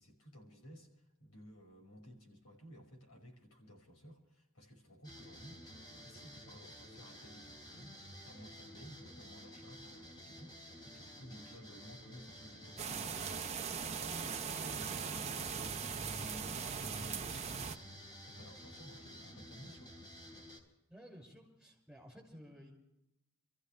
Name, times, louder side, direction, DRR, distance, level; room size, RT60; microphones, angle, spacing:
voice 1, 0.0-20.0, equal, 85° left, 2 dB, 5.6 m, -56 dB
sound 1, 5.0-20.6, equal, 20° left, 3.7 m, -53 dB
sound 2, 12.8-17.8, right 6 dB, 30° right, 0.8 m, -40 dB
voice 2, 20.9-22.7, equal, ahead, 2 dB, 5.8 m, -55 dB
29.0 x 14.5 x 3.3 m, 0.89 s
head